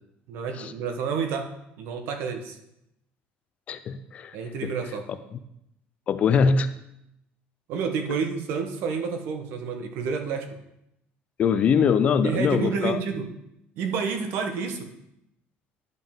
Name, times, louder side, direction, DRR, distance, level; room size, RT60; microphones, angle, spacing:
voice 1, 0.3-1.5 1.8-2.6 4.3-5.1 7.7-10.5 12.2-13.3 13.8-14.9, right 5 dB, 60° right, 6 dB, 1.0 m, -29 dB
voice 2, 3.7-4.4 4.6-4.7 6.1-6.7 11.4-13.0, left 6 dB, 30° left, 11 dB, 0.4 m, -22 dB
10.5 x 5.5 x 3.6 m, 0.82 s
cardioid pair, 170°, 4 cm